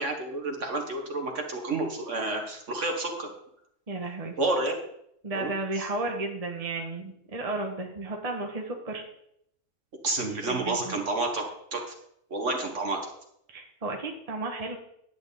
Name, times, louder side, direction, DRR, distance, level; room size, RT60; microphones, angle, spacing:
voice 1, 0.0-3.3 4.4-4.8 5.3-5.5 10.0-11.4 11.7-11.8 12.3-13.1, right 2 dB, 55° right, 3 dB, 1.9 m, -29 dB
voice 2, 3.9-4.3 5.2-9.0 10.3-11.0 13.5-14.8, right 2 dB, 25° right, 1 dB, 1.4 m, -33 dB
10.5 x 5.0 x 8.3 m, 0.73 s
omnidirectional pair, 1.5 m